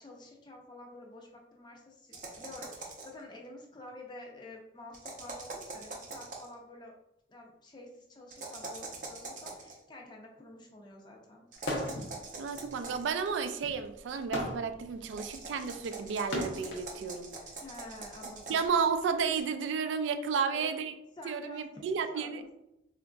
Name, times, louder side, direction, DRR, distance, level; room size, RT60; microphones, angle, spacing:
voice 1, 0.0-6.9 7.3-11.4 17.6-18.6 20.3-20.7 21.2-22.5, left 2 dB, 25° left, 0 dB, 0.5 m, -49 dB
sound 1, 2.1-3.2 4.9-6.5 8.3-9.7 11.5-13.1 15.1-18.7, right 3 dB, 45° right, 0.6 m, -44 dB
sound 2, 11.6-12.1 12.5-16.9 17.8-19.4, left 1 dB, 75° left, 0.7 m, -38 dB
voice 2, 12.3-17.3 18.5-20.9 21.2-22.4, right 6 dB, 85° right, 8 dB, 0.3 m, -32 dB
3.8 x 2.5 x 2.2 m, 0.86 s
head